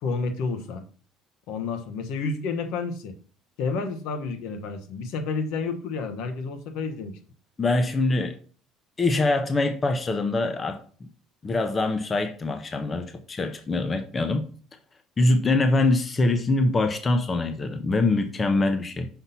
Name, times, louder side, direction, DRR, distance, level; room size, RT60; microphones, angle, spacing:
voice 1, 0.0-0.8 1.5-3.1 3.6-7.2, left 4 dB, 70° left, 1.0 m, -30 dB
voice 2, 7.6-8.4 9.0-10.8 11.4-14.5 15.2-19.1, left 2 dB, 20° left, 0.6 m, -24 dB
5.9 x 5.6 x 4.1 m
cardioid pair, 155°, 0 cm